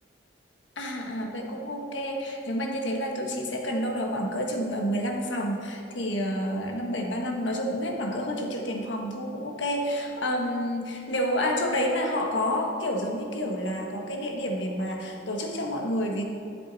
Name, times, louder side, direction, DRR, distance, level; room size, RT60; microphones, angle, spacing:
voice 1, 0.8-16.2, equal, 75° left, 1 dB, 1.4 m, -29 dB
13.0 x 7.4 x 4.1 m, 2.6 s
head